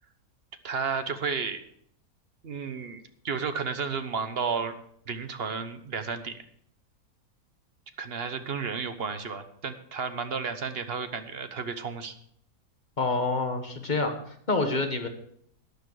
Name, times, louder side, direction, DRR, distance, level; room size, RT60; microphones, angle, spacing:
voice 1, 0.6-1.6 2.4-4.7 5.1-6.4 8.0-12.1, right 5 dB, 45° right, 9 dB, 1.1 m, -32 dB
voice 2, 13.0-15.1, left 3 dB, 30° left, 5 dB, 1.5 m, -27 dB
13.5 x 10.0 x 4.8 m, 0.66 s
omnidirectional pair, 1.5 m